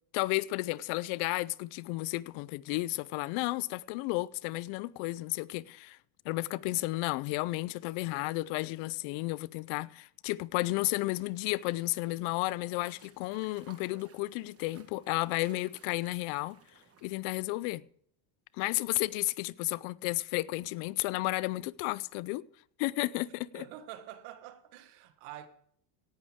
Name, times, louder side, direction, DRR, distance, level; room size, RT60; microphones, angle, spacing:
voice 1, 0.1-6.0 6.3-16.6 17.0-17.8 18.5-22.4 22.8-23.6, left 20 dB, 75° left, 0.6 m, -33 dB
sound 1, 11.1-17.4, right 7 dB, 30° right, 1.3 m, -60 dB
voice 2, 23.5-25.5, right 12 dB, 85° right, 1.4 m, -46 dB
17.0 x 11.0 x 3.6 m
cardioid pair, 135°, 49 cm